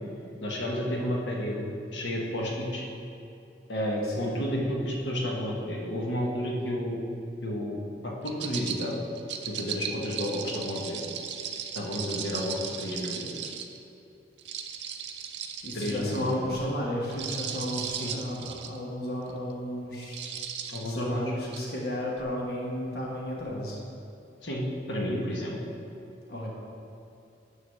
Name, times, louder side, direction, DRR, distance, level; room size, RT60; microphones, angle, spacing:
voice 1, 0.4-2.8 3.7-7.0 7.4-9.0 9.5-11.0 11.7-13.4 15.7-16.4 18.0-18.1 20.7-21.2 24.4-25.6, equal, 80° left, -2 dB, 1.3 m, -31 dB
voice 2, 4.0-4.4 15.6-20.3 20.8-23.8 26.3-26.5, left 1 dB, 60° left, -3 dB, 1.2 m, -33 dB
sound 1, 8.2-13.8 14.4-16.3 17.0-18.8 19.3-19.5 20.0-20.9 21.5-21.6, right 8 dB, 75° right, 0.5 m, -37 dB
9.7 x 3.9 x 6.4 m, 2.7 s
head